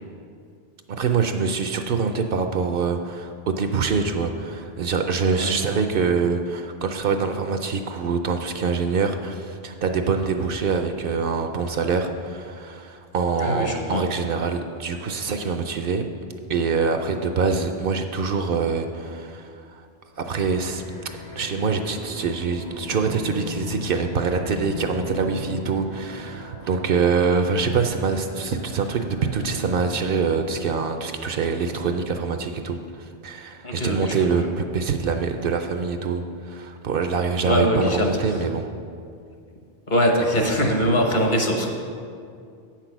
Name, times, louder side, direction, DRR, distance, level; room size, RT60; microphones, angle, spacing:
voice 1, 0.9-16.0 16.5-19.8 20.2-20.8 21.4-38.7, right 5 dB, 65° right, 6 dB, 0.7 m, -25 dB
voice 2, 13.4-14.0 33.6-34.5 37.4-38.2 39.9-41.7, equal, 50° left, 2 dB, 1.2 m, -22 dB
sound 1, 20.1-30.9, equal, 70° left, 2.2 m, -37 dB
8.4 x 6.0 x 5.9 m, 2.3 s
omnidirectional pair, 1.1 m